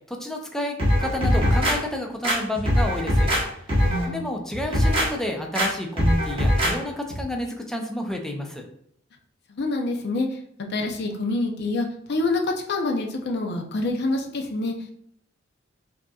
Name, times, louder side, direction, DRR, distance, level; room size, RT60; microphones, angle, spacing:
voice 1, 0.1-3.3 4.1-8.6, left 1 dB, 5° left, 1 dB, 0.5 m, -30 dB
sound 1, 0.8-1.8 2.2-3.4 3.7-4.0 4.5-5.1 5.5-5.7 6.0-6.7 7.1-7.2, equal, 30° right, 1.0 m, -21 dB
voice 2, 3.8-4.3 9.5-10.3 10.7-12.4 12.7-14.7, left 2 dB, 55° left, 2 dB, 0.6 m, -26 dB
5.0 x 2.8 x 2.3 m, 0.71 s
head